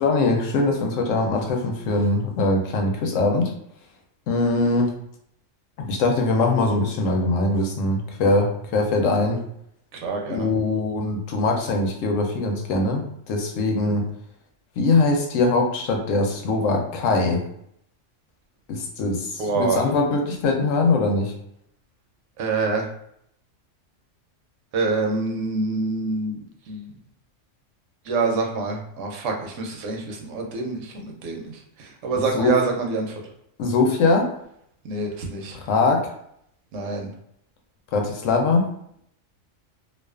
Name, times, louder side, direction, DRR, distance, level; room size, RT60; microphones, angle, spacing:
voice 1, 0.0-3.5 4.3-4.9 5.8-9.4 10.3-14.1 14.8-17.4 18.7-21.3 32.1-32.5 33.6-34.3 35.5-36.1 37.9-38.7, left 3 dB, 85° left, 3 dB, 0.9 m, -22 dB
voice 2, 9.9-10.5 13.8-13.9 19.4-19.9 22.4-22.9 24.7-26.4 26.7-26.9 28.1-33.1 34.8-35.6 36.7-37.1, right 3 dB, 80° right, 1 dB, 1.0 m, -26 dB
2.4 x 2.3 x 2.3 m, 0.72 s
omnidirectional pair, 1.3 m